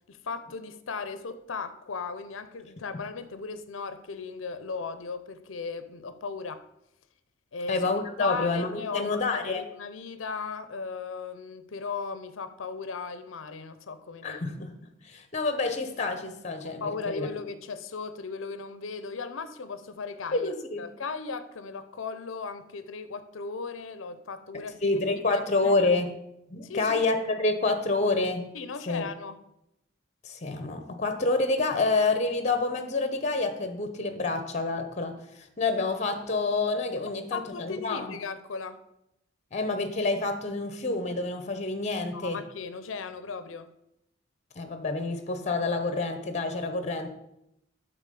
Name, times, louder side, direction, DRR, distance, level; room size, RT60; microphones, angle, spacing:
voice 1, 0.1-6.7 7.5-7.9 8.2-14.4 16.8-20.5 20.8-25.0 25.3-25.7 26.6-27.0 28.5-29.4 37.3-38.8 42.1-43.7, left 4 dB, 85° left, 0.6 m, -37 dB
voice 2, 7.7-9.6 14.2-14.7 15.0-17.3 20.3-20.8 24.8-26.1 26.5-28.5 28.9-29.1 30.2-38.1 39.5-42.4 44.6-47.1, left 3 dB, 35° left, 0.8 m, -28 dB
9.0 x 4.0 x 6.8 m
head